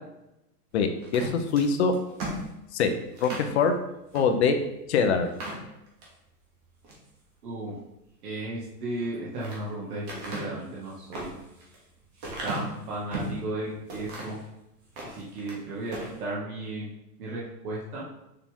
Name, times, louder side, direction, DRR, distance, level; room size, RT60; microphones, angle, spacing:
voice 1, 0.7-1.9 2.7-2.9 3.2-3.7 4.1-4.6 4.9-5.3, left 5 dB, 40° left, 7 dB, 0.8 m, -23 dB
sound 1, 1.0-3.5 4.1-4.3 4.7-4.8 5.2-6.1 6.6-7.1 8.9-9.6 10.1-13.4 13.9-14.4 14.8-15.6 15.9-16.2, right 1 dB, 30° right, 2.3 m, -37 dB
voice 2, 7.4-7.7 8.2-11.3 12.4-14.4 15.1-16.9 17.2-18.1, right 2 dB, 65° right, -5 dB, 2.1 m, -34 dB
6.8 x 6.0 x 3.7 m, 0.90 s
hypercardioid pair, 155°, 49 cm